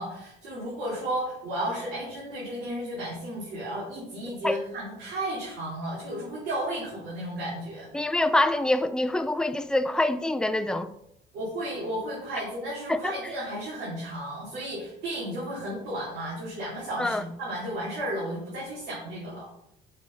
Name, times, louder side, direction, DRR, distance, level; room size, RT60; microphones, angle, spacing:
voice 1, 0.0-7.9 11.3-19.5, right 1 dB, 85° right, 3.1 m, -33 dB
voice 2, 7.9-10.9 12.9-13.1 17.0-17.2, left 1 dB, 5° left, 0.5 m, -25 dB
6.4 x 5.1 x 5.5 m
cardioid pair, 110°, 17 cm